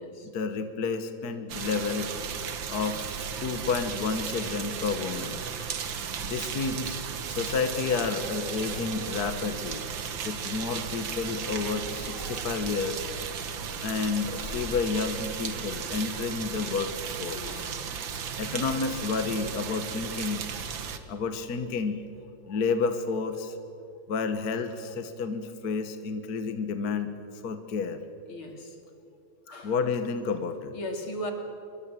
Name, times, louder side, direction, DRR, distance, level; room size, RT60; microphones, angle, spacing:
voice 1, 0.2-2.1 2.7-3.2 3.4-5.4 5.9-7.0 7.3-9.8 10.2-13.1 13.4-13.5 13.8-16.9 17.2-17.6 18.1-20.7 21.1-22.0 22.5-23.6 24.1-27.1 27.4-28.0 29.6-30.7, left 4 dB, 50° left, 8 dB, 1.7 m, -30 dB
sound 1, 1.5-21.0, right 7 dB, 70° right, 2.1 m, -35 dB
sound 2, 7.7-15.0, left 1 dB, 15° left, 1.7 m, -49 dB
voice 2, 17.4-17.8 28.3-28.8 29.5-29.8 30.7-31.3, equal, 80° left, 4 dB, 3.7 m, -37 dB
25.5 x 24.0 x 7.6 m, 2.6 s
omnidirectional pair, 2.3 m